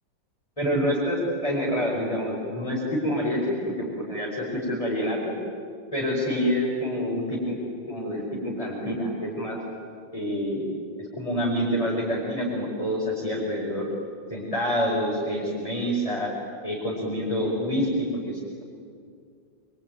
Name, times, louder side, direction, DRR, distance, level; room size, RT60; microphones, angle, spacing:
voice 1, 0.6-5.3 5.9-7.6 7.9-9.6 10.1-10.7 11.0-13.9 14.3-16.3 16.6-18.6, equal, 15° left, -4 dB, 5.0 m, -27 dB
26.0 x 23.5 x 9.3 m, 2.3 s
omnidirectional pair, 2.0 m